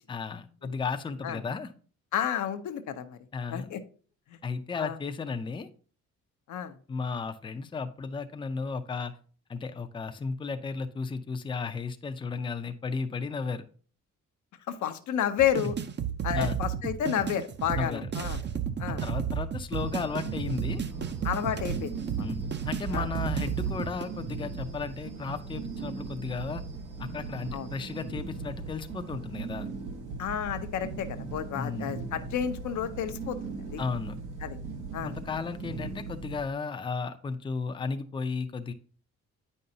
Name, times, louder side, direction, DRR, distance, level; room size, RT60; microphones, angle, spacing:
voice 1, 0.1-1.7 3.3-3.7 4.4-5.7 6.9-9.1 9.5-13.6 16.3-16.6 17.8-18.1 18.9-20.8 22.2-26.6 27.0-29.7 31.5-31.9 33.8-34.2 35.0-38.7, left 4 dB, 15° left, 7 dB, 0.5 m, -34 dB
voice 2, 2.1-3.2 3.5-3.8 4.3-4.4 4.8-5.0 6.5-6.7 14.7-15.8 16.2-18.4 18.8-19.0 21.2-22.3 22.9-23.1 27.5-27.7 30.2-33.4 33.7-33.8 34.4-34.6 34.9-35.1, left 9 dB, 75° left, 8 dB, 0.7 m, -31 dB
sound 1, 15.4-24.0, right 8 dB, 35° right, 0.6 m, -32 dB
sound 2, 19.7-36.4, right 4 dB, 80° right, 1.3 m, -38 dB
8.4 x 5.4 x 2.8 m, 0.41 s
cardioid pair, 90°, 30 cm